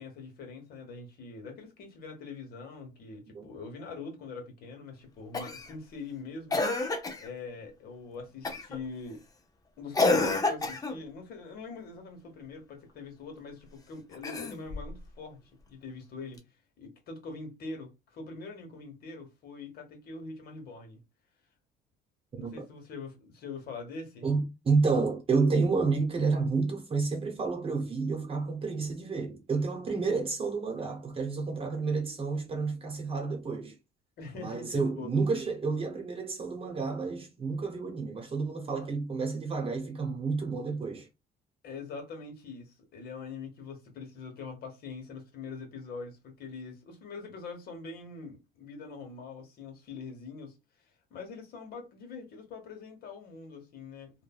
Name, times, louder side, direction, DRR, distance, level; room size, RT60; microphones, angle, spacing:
voice 1, 0.0-6.6 7.2-9.2 9.8-16.4 16.8-21.0 22.3-24.3 34.2-35.1 41.6-50.5 51.1-54.1, left 4 dB, 65° left, 1.1 m, -43 dB
Cough, 5.3-5.7 6.5-7.3 8.4-8.8 9.9-11.0 14.1-14.9 16.4-16.5, left 3 dB, 20° left, 0.6 m, -28 dB
voice 2, 24.2-33.8 34.3-41.1, right 4 dB, 35° right, 0.8 m, -30 dB
3.2 x 2.2 x 2.3 m
cardioid pair, 110°, 17 cm